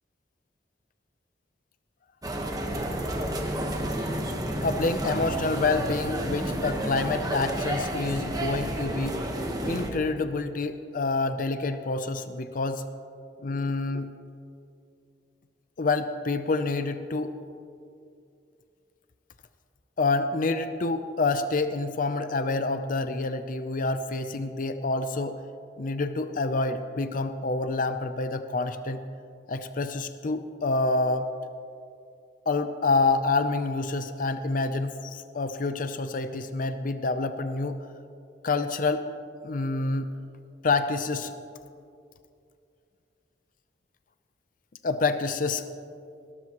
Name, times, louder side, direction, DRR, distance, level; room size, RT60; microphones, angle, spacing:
sound 1, 2.2-9.9, right 1 dB, 20° right, 1.3 m, -30 dB
voice 1, 4.6-9.2 9.6-12.9 13.4-14.1 15.8-17.4 20.0-25.4 25.8-29.0 29.5-31.3 32.5-37.8 38.4-39.1 39.4-40.1 40.6-41.3 44.8-45.7, left 3 dB, 50° left, 10 dB, 0.6 m, -27 dB
20.0 x 13.0 x 3.1 m, 2.4 s
head